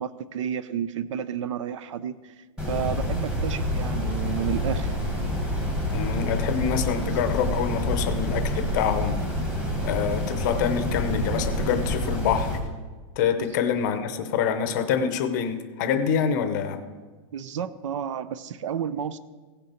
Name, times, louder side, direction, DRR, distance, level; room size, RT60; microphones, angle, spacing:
voice 1, 0.0-2.3 2.7-4.9 13.4-13.5 17.3-19.2, right 8 dB, 65° right, 15 dB, 0.6 m, -31 dB
sound 1, 2.6-12.6, left 1 dB, 5° right, 1.3 m, -27 dB
voice 2, 5.9-9.2 9.8-12.6 13.2-16.8, left 7 dB, 35° left, 10 dB, 0.7 m, -26 dB
16.0 x 6.7 x 4.3 m, 1.4 s
supercardioid pair, 180°, 17 cm